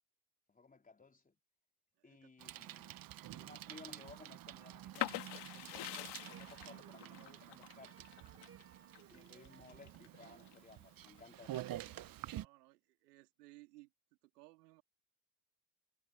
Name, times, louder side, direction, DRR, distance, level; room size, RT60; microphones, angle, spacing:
voice 1, 0.5-1.3 2.0-3.0 3.3-5.2 5.5-8.1 9.1-12.1, left 4 dB, 20° left, 3.8 m, -59 dB
voice 2, 2.0-2.3 12.3-13.9 14.2-14.8, right 21 dB, 85° right, 4.0 m, -61 dB
Bicycle, 2.4-12.5, right 13 dB, 45° right, 1.3 m, -49 dB
sound 1, 4.9-10.6 11.0-11.9, left 17 dB, 60° left, 2.2 m, -44 dB
soprano sax solo, 6.2-11.3, right 6 dB, 30° right, 3.9 m, -65 dB
supercardioid pair, 85°, 46 cm